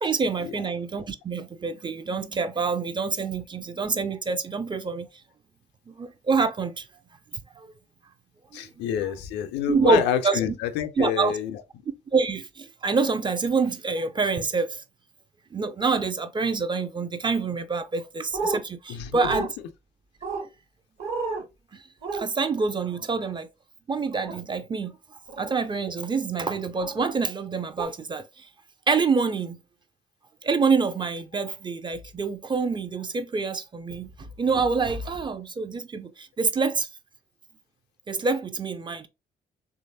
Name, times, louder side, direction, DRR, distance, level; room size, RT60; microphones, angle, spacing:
voice 1, 0.0-5.1 5.9-6.9 7.6-7.7 8.5-8.7 9.7-10.4 11.0-11.4 12.1-14.8 15.5-19.5 21.7-21.8 22.1-23.5 23.9-25.0 25.4-28.5 28.9-29.6 30.4-36.9 38.1-39.1, right 4 dB, 25° right, 0.4 m, -26 dB
voice 2, 8.5-11.6 18.9-19.5, left 9 dB, 60° left, 0.4 m, -28 dB
sound 1, 18.3-18.6 19.2-19.5 20.2-20.5 21.0-21.4 22.0-22.2 24.2-24.4 25.3-25.5 26.8-27.0 27.8-27.9, right 4 dB, 50° right, 0.9 m, -30 dB
3.0 x 2.4 x 2.6 m
figure-of-eight pair, 40°, 20 cm